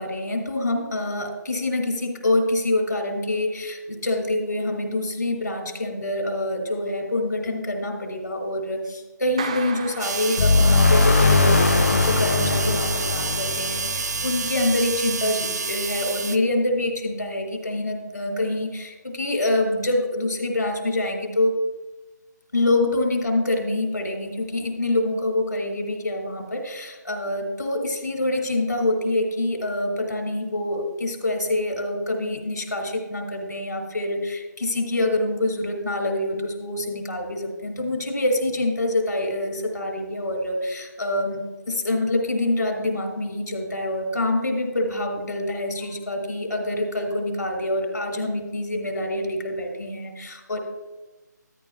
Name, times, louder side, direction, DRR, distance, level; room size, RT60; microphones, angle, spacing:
voice 1, 0.0-11.5 11.8-21.6 22.5-41.4 41.7-50.6, left 1 dB, 70° left, 4 dB, 2.3 m, -26 dB
Clapping, 9.4-11.1, right 6 dB, 20° right, 0.4 m, -35 dB
sound 1, 10.0-16.4, right 4 dB, 60° right, 0.7 m, -29 dB
sound 2, 10.4-15.0, left 3 dB, 45° left, 0.8 m, -20 dB
13.0 x 11.0 x 2.3 m, 1.1 s
figure-of-eight pair, 160°, 10 cm